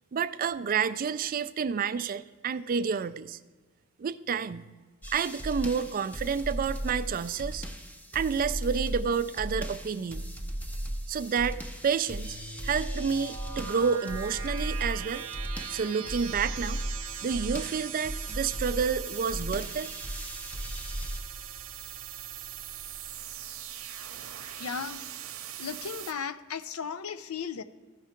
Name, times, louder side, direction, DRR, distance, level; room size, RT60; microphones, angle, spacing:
voice 1, 0.1-3.4 4.0-4.7 5.1-7.7 8.1-10.2 11.1-12.4 12.6-15.2 15.7-16.8 17.2-19.9, right 6 dB, 40° right, 15 dB, 0.3 m, -29 dB
sound 1, 5.0-21.2, equal, 5° left, 0.6 m, -37 dB
sound 2, 12.1-26.1, right 9 dB, 75° right, 0.8 m, -41 dB
sound 3, 21.1-24.5 25.0-25.1, equal, 60° left, 1.1 m, -54 dB
voice 2, 24.6-25.0 25.6-27.6, left 6 dB, 80° left, 14 dB, 0.5 m, -35 dB
15.0 x 5.8 x 4.4 m, 1.3 s
head